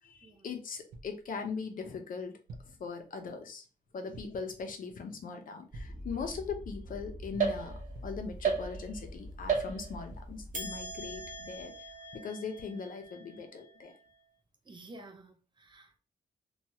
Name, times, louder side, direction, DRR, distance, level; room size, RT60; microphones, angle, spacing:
voice 1, 0.0-2.4 2.6-3.7 3.9-11.7 12.1-13.9, left 5 dB, 60° left, 0.6 m, -40 dB
sound 1, 0.9-1.3 2.5-2.8 4.1-4.5 5.7-6.1 7.3-8.3 9.5-10.4, right 2 dB, 85° right, 0.5 m, -50 dB
sound 2, 5.7-11.9, equal, 10° right, 0.9 m, -46 dB
sound 3, 7.4-8.0 8.4-9.1 9.5-10.1 10.5-14.0, right 5 dB, 55° right, 0.8 m, -36 dB
voice 2, 14.6-16.0, right 2 dB, 30° right, 0.5 m, -52 dB
2.9 x 2.3 x 2.8 m
cardioid pair, 115°, 16 cm